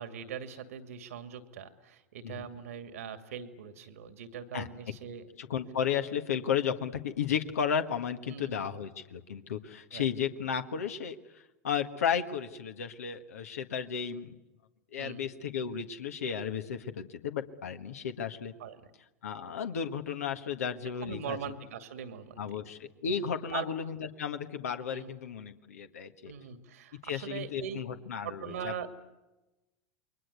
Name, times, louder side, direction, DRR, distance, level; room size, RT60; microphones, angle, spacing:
voice 1, 0.0-5.3 8.3-8.7 9.9-10.1 15.0-15.3 18.6-18.9 21.0-22.6 23.5-23.7 24.9-25.1 26.3-27.8 28.2-28.9, right 8 dB, 75° right, 9 dB, 2.4 m, -41 dB
voice 2, 5.4-14.4 14.9-18.5 19.2-21.4 22.4-26.3 27.0-28.9, left 7 dB, 80° left, 7 dB, 1.5 m, -34 dB
29.0 x 23.0 x 8.2 m, 1.0 s
hypercardioid pair, 90°, 8 cm